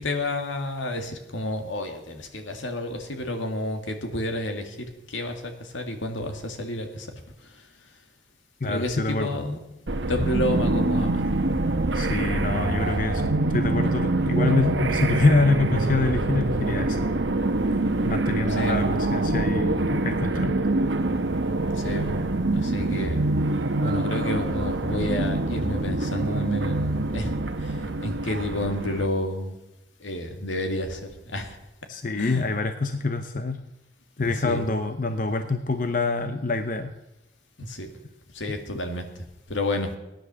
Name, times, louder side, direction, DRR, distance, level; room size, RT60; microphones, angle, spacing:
voice 1, 0.0-7.1 8.7-9.6 10.1-11.2 12.4-12.5 12.8-13.0 18.6-18.8 21.8-22.1 22.5-23.2 23.8-27.3 27.6-29.6 30.0-31.6 32.2-32.4 34.2-34.7 37.6-37.9 38.3-39.1 39.5-39.9, left 1 dB, 85° left, 5 dB, 2.1 m, -30 dB
voice 2, 8.6-9.4 11.9-17.1 18.0-20.6 31.9-33.6 34.2-36.9, left 3 dB, 45° left, 9 dB, 0.7 m, -26 dB
sound 1, 9.9-29.1, right 2 dB, 70° right, 1.1 m, -25 dB
17.0 x 10.5 x 6.9 m, 0.95 s
head